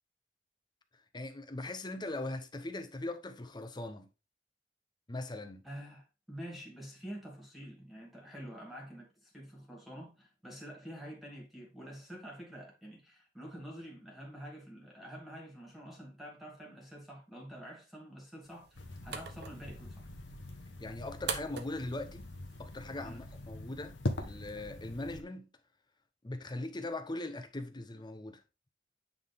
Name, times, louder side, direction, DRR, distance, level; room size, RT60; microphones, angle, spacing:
voice 1, 1.1-4.1 5.1-5.6 20.8-22.3 22.6-25.5 26.2-28.4, left 2 dB, 25° left, 0.8 m, -40 dB
voice 2, 5.6-20.0 23.0-23.2, equal, ahead, 2.3 m, -47 dB
sound 1, 18.4-23.5, right 6 dB, 60° right, 0.9 m, -45 dB
sound 2, 18.7-25.2, left 1 dB, 70° left, 1.1 m, -42 dB
8.9 x 3.8 x 3.5 m
head